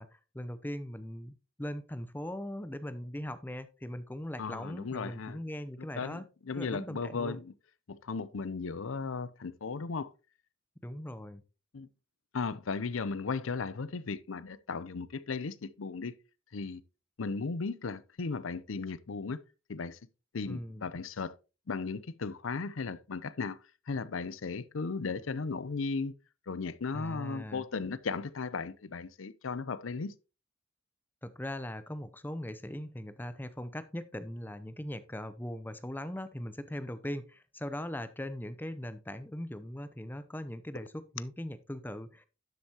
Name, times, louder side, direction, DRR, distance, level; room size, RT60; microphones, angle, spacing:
voice 1, 0.0-6.2 6.5-7.4 10.8-11.4 20.5-20.9 26.9-27.7 31.2-42.2, left 1 dB, 10° left, 0.6 m, -40 dB
voice 2, 4.4-5.4 5.8-7.5 7.9-10.1 11.7-11.9 12.3-16.2 16.5-16.8 17.2-19.4 19.7-20.0 20.3-21.3 21.7-23.6 23.9-26.1 26.5-30.1, left 4 dB, 85° left, 0.6 m, -36 dB
12.0 x 8.1 x 2.9 m
head